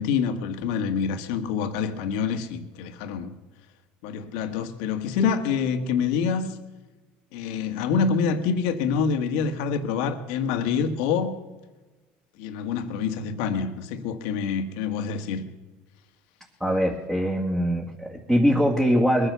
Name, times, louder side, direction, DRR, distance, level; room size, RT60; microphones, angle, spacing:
voice 1, 0.0-3.3 4.0-6.6 7.3-11.3 12.4-15.4, left 6 dB, 80° left, 7 dB, 1.6 m, -26 dB
voice 2, 16.6-19.3, equal, 5° right, -1 dB, 1.9 m, -22 dB
21.0 x 10.0 x 6.9 m, 1.2 s
supercardioid pair, 115°, 4 cm